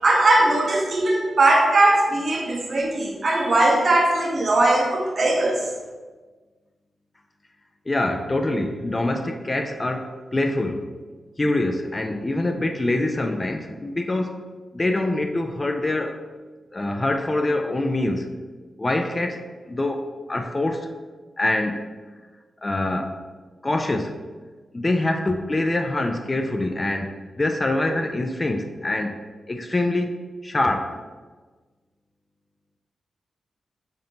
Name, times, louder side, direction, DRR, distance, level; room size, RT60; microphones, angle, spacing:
voice 1, 0.0-5.6, right 2 dB, 60° right, 0 dB, 0.8 m, -19 dB
voice 2, 7.9-10.8 11.4-14.4 14.7-16.2 16.7-18.3 18.8-19.4 19.7-20.9 21.4-21.8 22.6-23.1 23.6-24.2 24.7-29.2 29.5-30.2 30.4-31.0, left 2 dB, 30° left, 5 dB, 0.4 m, -25 dB
5.2 x 2.6 x 2.9 m, 1.4 s
cardioid pair, 45°, 0 cm